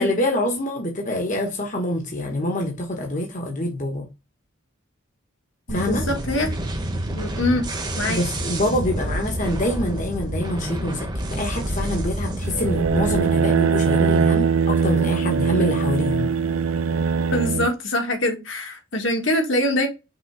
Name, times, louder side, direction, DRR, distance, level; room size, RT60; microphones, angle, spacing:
voice 1, 0.0-4.1 5.7-6.0 8.1-16.3, left 1 dB, 40° left, 1.2 m, -25 dB
voice 2, 5.7-6.5 7.1-7.7 8.0-8.2 17.3-19.9, left 1 dB, 65° left, 1.7 m, -24 dB
sound 1, 5.7-13.3, right 1 dB, 20° right, 1.1 m, -28 dB
sound 2, 12.4-17.7, right 5 dB, 85° right, 0.5 m, -21 dB
6.0 x 3.6 x 4.7 m
head